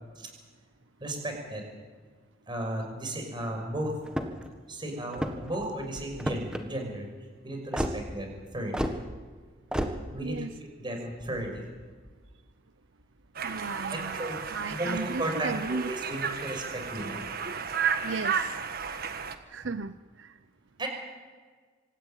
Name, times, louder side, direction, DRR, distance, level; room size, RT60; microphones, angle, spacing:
voice 1, 1.0-1.6 2.5-4.0 4.7-7.1 7.4-8.9 10.1-10.4 10.8-11.6 13.9-14.4 14.8-17.2 20.8-20.9, right 1 dB, 25° right, 3 dB, 6.2 m, -34 dB
sound 1, 4.1-4.5 5.1-5.6 6.2-6.6 7.7-8.0 8.7-9.0 9.7-9.9, equal, 5° right, 1.8 m, -30 dB
voice 2, 10.2-10.5 13.4-16.2 18.0-18.6 19.5-20.3, right 4 dB, 75° right, 12 dB, 0.7 m, -36 dB
Conversation, 13.3-19.3, right 6 dB, 50° right, 1.5 m, -33 dB
25.5 x 14.5 x 9.1 m, 1.5 s
head